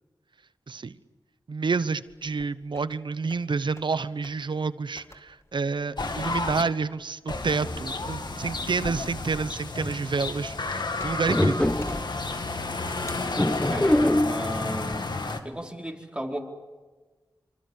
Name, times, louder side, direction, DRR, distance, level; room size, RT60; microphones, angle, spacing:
voice 1, 0.7-1.0 1.5-11.7, right 4 dB, 70° right, 15 dB, 1.0 m, -29 dB
sound 1, 2.1-3.0 3.3-4.0 4.2-4.4 5.0-11.4 11.8-12.6 13.1-14.0 14.6-15.0, left 1 dB, 35° left, 2.5 m, -45 dB
sound 2, 6.0-6.6 7.3-15.4, left 3 dB, 60° left, 2.2 m, -31 dB
sound 3, 9.8-10.1 11.3-12.1 13.4-14.4, left 1 dB, 15° left, 1.0 m, -23 dB
voice 2, 13.6-15.1 15.4-16.4, right 1 dB, 10° right, 1 dB, 4.7 m, -35 dB
26.0 x 26.0 x 8.4 m, 1.3 s
cardioid pair, 45°, 8 cm